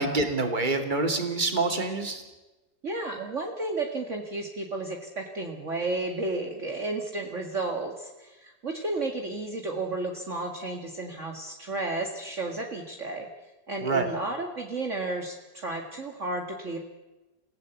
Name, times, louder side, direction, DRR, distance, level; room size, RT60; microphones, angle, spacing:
voice 1, 0.0-2.2 13.8-14.1, right 3 dB, 25° right, 5 dB, 2.8 m, -26 dB
voice 2, 2.8-13.3 13.7-16.8, right 2 dB, 45° right, 2 dB, 2.3 m, -32 dB
27.5 x 16.5 x 8.2 m, 1.1 s
omnidirectional pair, 1.8 m